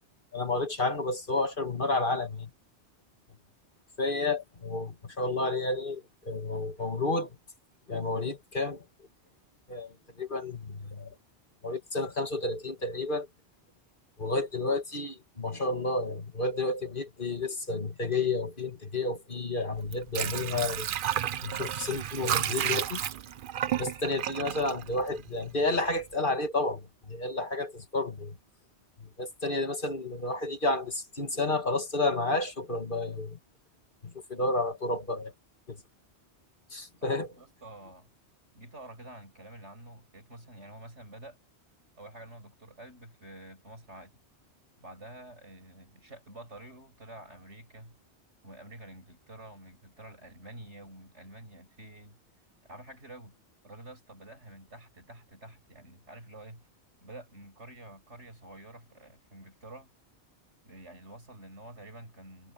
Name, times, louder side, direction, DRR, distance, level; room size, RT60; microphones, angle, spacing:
voice 1, 0.3-2.5 4.0-7.4 7.9-8.9 9.7-11.1 11.6-13.3 14.2-20.9 21.4-23.0 23.8-28.4 29.0-33.4 34.0-35.3 35.7-35.8 36.7-37.3, left 2 dB, 50° left, 2.5 m, -31 dB
Water / Sink (filling or washing), 19.7-25.6 26.0-26.1, right 10 dB, 55° right, 0.7 m, -32 dB
voice 2, 37.0-38.1 38.5-41.4 42.0-44.2 44.8-48.0 48.4-52.2 52.6-53.4 53.6-56.7 57.0-59.9 60.7-62.5, right 1 dB, 85° right, 7.2 m, -48 dB
omnidirectional pair, 1.2 m